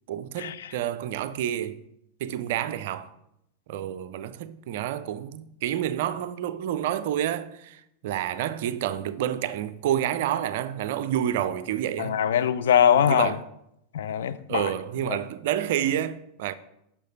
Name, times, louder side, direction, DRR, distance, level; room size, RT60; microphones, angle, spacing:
voice 1, 0.1-1.8 2.2-3.1 3.7-12.2 12.9-13.4 14.5-16.5, right 11 dB, 50° right, 0.4 m, -29 dB
voice 2, 12.0-13.4 13.9-14.6 15.1-15.2, left 9 dB, 60° left, 0.3 m, -22 dB
6.5 x 5.5 x 4.0 m
figure-of-eight pair, 90°, 0 cm